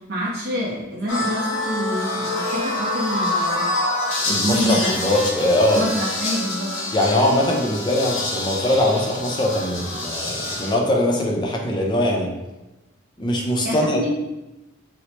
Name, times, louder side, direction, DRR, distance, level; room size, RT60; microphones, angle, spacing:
voice 1, 0.1-3.7 4.3-4.9 5.7-6.8 13.6-14.1, equal, 55° right, -4 dB, 0.5 m, -26 dB
sound 1, 1.1-10.7, left 2 dB, 75° left, 0.8 m, -26 dB
voice 2, 4.3-5.8 6.9-12.3 13.2-14.1, left 1 dB, 25° left, 0 dB, 0.5 m, -21 dB
3.1 x 2.0 x 4.1 m, 0.99 s
head